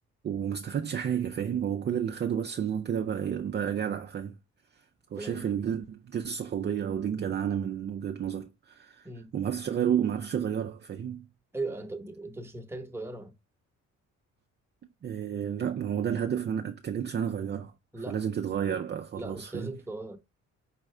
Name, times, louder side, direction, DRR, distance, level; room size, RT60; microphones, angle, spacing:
voice 1, 0.2-4.4 5.1-9.1 9.3-11.3 15.0-17.7 18.1-19.7, right 8 dB, 35° right, 0.5 m, -31 dB
voice 2, 11.5-13.3 17.9-18.3 19.1-20.2, right 2 dB, 10° right, 1.0 m, -38 dB
5.6 x 2.5 x 3.2 m
cardioid pair, 90°, 30 cm